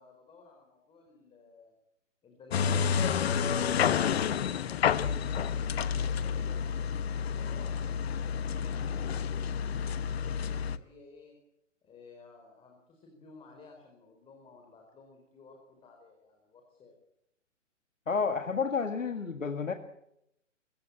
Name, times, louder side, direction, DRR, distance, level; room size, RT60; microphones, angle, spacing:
voice 1, 0.0-1.7 2.2-6.6 7.0-11.4 11.8-17.0, left 3 dB, 15° left, 2 dB, 4.4 m, -55 dB
sound 1, 2.5-10.8, left 7 dB, 55° left, 1.2 m, -30 dB
voice 2, 18.1-19.7, left 5 dB, 85° left, 7 dB, 1.9 m, -30 dB
25.0 x 16.5 x 8.8 m, 0.80 s
figure-of-eight pair, 125°, 38 cm